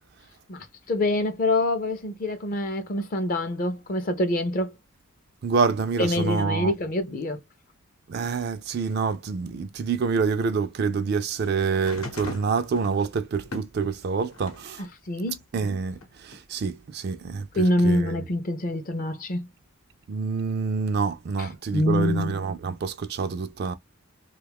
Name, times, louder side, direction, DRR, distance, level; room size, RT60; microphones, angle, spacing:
voice 1, 0.5-4.7 6.0-7.4 15.1-15.4 17.6-19.5 21.4-21.5 21.7-22.4, left 1 dB, 40° left, 0.4 m, -25 dB
voice 2, 5.4-6.7 8.1-14.9 15.5-18.2 20.1-23.8, right 5 dB, 50° right, 0.3 m, -27 dB
sound 1, 11.7-14.7 15.2-16.4 17.4-17.5, left 3 dB, 80° left, 0.9 m, -41 dB
2.9 x 2.3 x 3.3 m
head